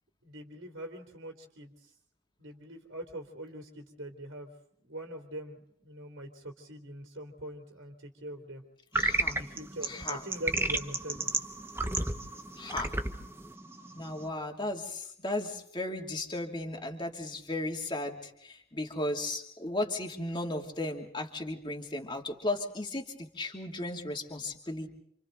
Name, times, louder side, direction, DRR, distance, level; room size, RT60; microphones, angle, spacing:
voice 1, 0.2-1.9 2.4-4.5 4.8-8.6 9.2-11.3, right 1 dB, 75° right, 2 dB, 3.4 m, -43 dB
voice 2, 8.9-9.4 9.8-10.2 12.6-12.9 13.9-24.9, left 2 dB, 20° left, 2 dB, 2.8 m, -35 dB
sound 1, 8.9-14.3, right 2 dB, 10° right, 1.1 m, -32 dB
29.0 x 27.5 x 4.0 m, 0.69 s
head